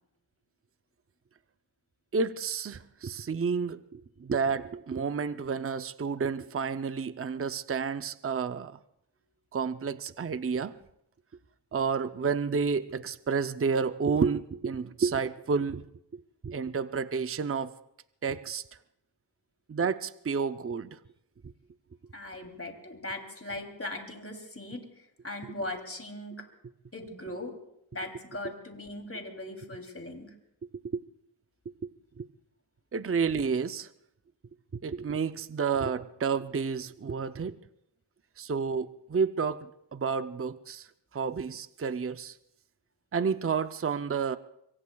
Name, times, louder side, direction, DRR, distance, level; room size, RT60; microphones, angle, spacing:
voice 1, 2.1-8.8 9.5-10.7 11.7-15.8 16.1-17.7 18.2-18.6 19.7-20.9 30.9-31.0 32.2-32.3 32.9-33.9 34.7-37.6 38.4-40.9 41.1-42.3 43.1-44.4, right 5 dB, 30° right, 12 dB, 0.5 m, -30 dB
voice 2, 22.1-26.4 26.9-27.5 27.9-30.3, left 1 dB, 30° left, 3 dB, 2.9 m, -39 dB
25.5 x 24.0 x 2.3 m, 0.80 s
wide cardioid pair, 80°, 43 cm